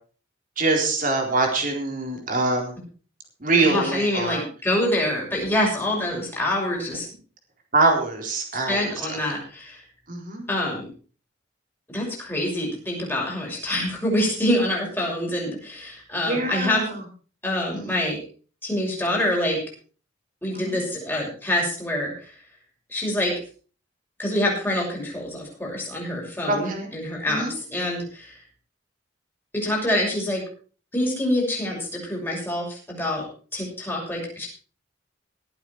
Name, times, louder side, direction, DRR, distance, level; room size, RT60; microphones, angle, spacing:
voice 1, 0.6-2.7 3.4-4.4 7.7-9.2 10.1-10.5 16.3-17.0 17.7-17.9 20.5-20.8 26.5-26.9 27.3-27.6, right 3 dB, 45° right, 1 dB, 4.1 m, -24 dB
voice 2, 3.6-7.1 8.7-9.8 10.5-10.8 11.9-16.9 17.4-18.2 18.6-19.6 20.4-22.3 22.9-23.3 24.2-27.4 27.7-28.3 29.5-30.4 30.9-33.3 33.5-34.5, left 1 dB, 10° left, -2 dB, 6.6 m, -26 dB
20.0 x 8.7 x 4.7 m, 0.40 s
head